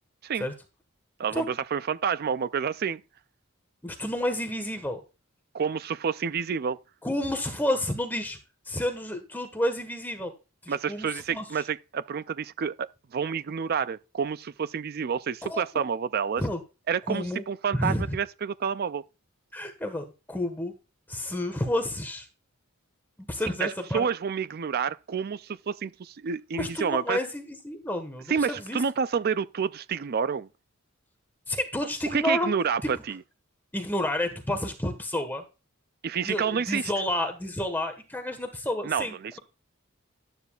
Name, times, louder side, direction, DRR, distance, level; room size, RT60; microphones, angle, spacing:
voice 1, 1.2-3.0 5.5-6.8 10.7-16.4 16.9-19.0 23.4-27.2 28.3-30.5 32.1-33.2 36.0-36.9 38.8-39.4, right 6 dB, 45° right, 0.4 m, -29 dB
voice 2, 3.8-5.0 7.0-8.4 8.7-10.3 10.6-11.4 15.4-15.6 16.4-16.6 17.1-17.4 17.7-18.2 19.5-20.7 21.1-22.3 23.3-24.0 26.5-28.8 31.5-32.5 32.8-32.9 33.7-35.4 36.2-39.4, left 1 dB, 10° left, 1.5 m, -30 dB
12.5 x 9.2 x 2.4 m
head